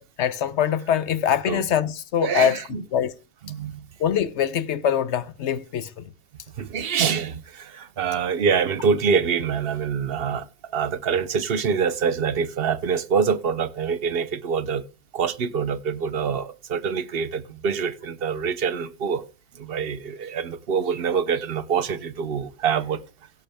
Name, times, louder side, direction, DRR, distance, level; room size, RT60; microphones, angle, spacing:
voice 1, 0.2-2.6 2.9-3.1 4.0-6.0, left 9 dB, 90° left, 1.1 m, -23 dB
voice 2, 2.2-2.8 3.4-3.9 6.6-10.5 10.7-14.8 15.1-19.2 19.5-23.0, right 6 dB, 65° right, 0.9 m, -25 dB
16.5 x 6.3 x 3.4 m
omnidirectional pair, 1.1 m